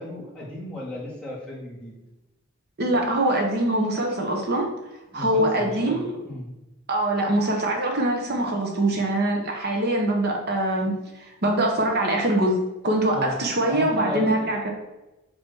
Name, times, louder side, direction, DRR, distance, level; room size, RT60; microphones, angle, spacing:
voice 1, 0.0-1.9 5.1-6.5 13.1-13.3 13.7-14.3, left 1 dB, 5° left, -6 dB, 2.1 m, -34 dB
voice 2, 2.8-4.7 5.1-6.2 6.9-10.9 11.4-14.7, right 1 dB, 50° right, 1 dB, 1.1 m, -23 dB
7.5 x 3.1 x 6.2 m, 0.99 s
head